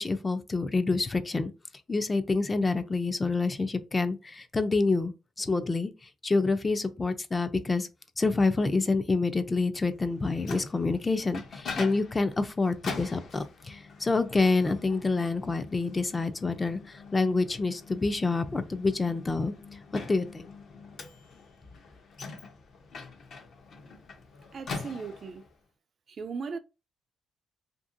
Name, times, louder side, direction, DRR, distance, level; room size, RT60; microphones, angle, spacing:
voice 1, 0.0-1.5 1.9-5.9 6.2-7.9 8.2-19.5 20.1-20.5, left 3 dB, 25° left, 0.4 m, -27 dB
Microwave oven, 10.1-25.5, left 4 dB, 60° left, 0.7 m, -44 dB
voice 2, 24.5-25.4 26.1-26.6, right 5 dB, 50° right, 0.3 m, -37 dB
2.8 x 2.6 x 2.5 m
cardioid pair, 90°, 0 cm